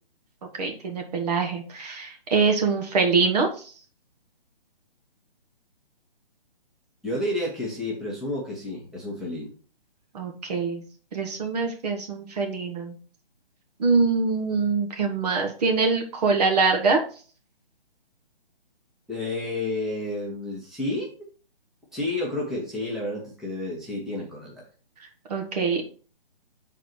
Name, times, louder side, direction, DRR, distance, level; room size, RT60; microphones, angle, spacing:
voice 1, 0.5-3.7 10.1-10.8 11.1-12.9 13.8-17.0 25.3-25.9, right 4 dB, 45° right, 3 dB, 1.4 m, -24 dB
voice 2, 7.0-9.5 19.1-21.1 21.9-24.6, left 2 dB, ahead, -5 dB, 1.2 m, -30 dB
6.2 x 4.1 x 4.5 m, 0.40 s
figure-of-eight pair, 140°, 29 cm